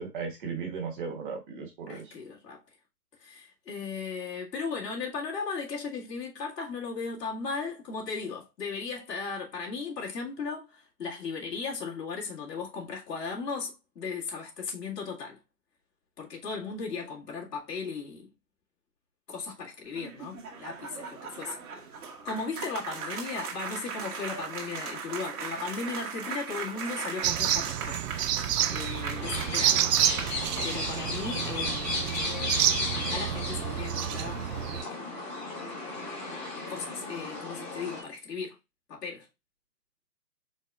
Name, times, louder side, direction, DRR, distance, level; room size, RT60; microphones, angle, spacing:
voice 1, 0.0-2.1, right 5 dB, 30° right, 1.4 m, -36 dB
voice 2, 1.9-2.6 3.2-15.4 16.2-18.3 19.3-21.6 22.2-28.0 28.7-29.9 30.6-32.1 32.6-34.4 34.7-35.2 36.7-38.6 38.9-39.3, left 5 dB, 80° left, 2.1 m, -36 dB
sound 1, 19.8-30.8, right 5 dB, 60° right, 1.5 m, -38 dB
sound 2, 27.2-34.8, right 11 dB, 75° right, 0.5 m, -29 dB
sound 3, 29.1-38.0, left 2 dB, 15° left, 1.1 m, -35 dB
4.6 x 3.9 x 2.3 m
hypercardioid pair, 155°, 48 cm